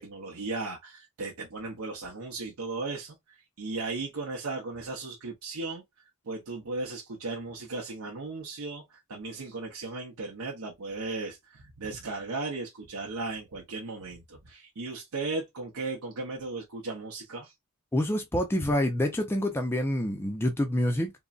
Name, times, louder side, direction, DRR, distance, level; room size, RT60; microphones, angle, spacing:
voice 1, 0.0-5.8 6.3-17.5, right 3 dB, 80° right, 0.7 m, -36 dB
voice 2, 17.9-21.1, left 1 dB, 10° left, 0.4 m, -27 dB
3.7 x 2.0 x 2.3 m
head